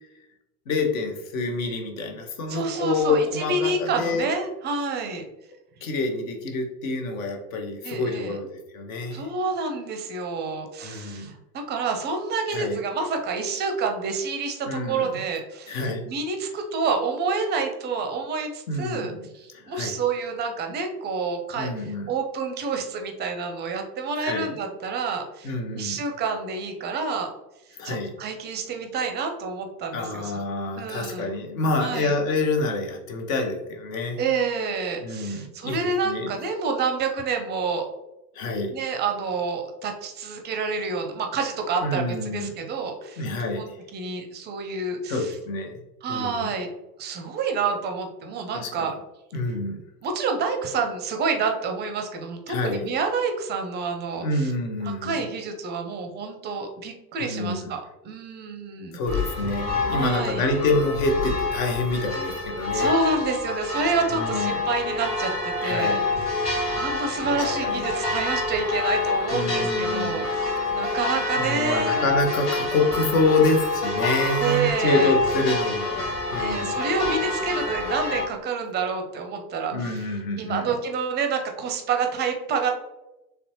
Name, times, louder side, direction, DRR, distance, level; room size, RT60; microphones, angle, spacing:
voice 1, 0.7-4.3 5.8-9.3 10.8-11.3 12.5-12.8 14.7-15.1 15.7-16.0 18.7-19.2 19.5-20.0 21.5-22.1 24.2-24.5 25.4-26.0 27.8-28.1 29.9-34.3 35.0-36.3 38.3-38.7 41.8-42.7 43.1-43.8 45.1-45.8 46.1-46.5 48.5-48.9 49.3-49.8 52.5-52.8 54.2-55.1 57.2-57.7 58.9-62.9 64.2-64.5 65.6-66.0 67.3-67.8 69.3-70.3 70.8-70.9 71.3-76.8 79.7-80.7, left 2 dB, 60° left, 3 dB, 0.9 m, -27 dB
voice 2, 2.5-5.2 7.8-8.4 9.1-15.8 16.1-27.3 27.8-30.3 30.8-31.3 31.8-32.1 34.2-37.9 38.7-45.3 46.0-46.7 47.0-48.9 50.0-54.5 54.8-59.0 59.9-60.4 62.7-72.0 74.4-75.2 76.4-80.1 80.4-82.7, right 4 dB, 25° right, 4 dB, 0.5 m, -28 dB
sound 1, 59.1-78.3, left 3 dB, 80° left, 1.2 m, -27 dB
4.1 x 3.3 x 2.8 m, 0.96 s
figure-of-eight pair, 75°, 46 cm